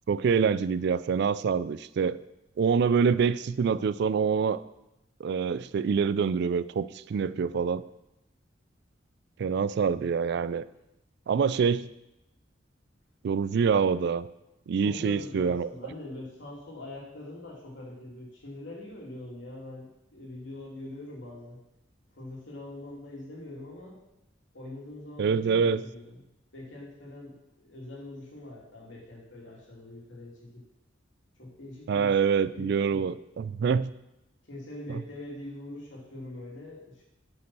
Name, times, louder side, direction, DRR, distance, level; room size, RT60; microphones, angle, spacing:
voice 1, 0.1-2.2 2.6-4.6 5.2-7.8 9.4-10.6 11.3-11.9 13.2-14.3 14.7-15.7 25.2-25.8 31.9-33.9, right 6 dB, 65° right, 16 dB, 0.3 m, -25 dB
voice 2, 14.7-21.6 22.1-24.0 24.5-26.2 26.5-30.6 31.4-32.2 32.5-33.1 34.4-37.0, left 1 dB, 85° left, -3 dB, 2.7 m, -43 dB
8.4 x 5.2 x 6.1 m, 0.89 s
head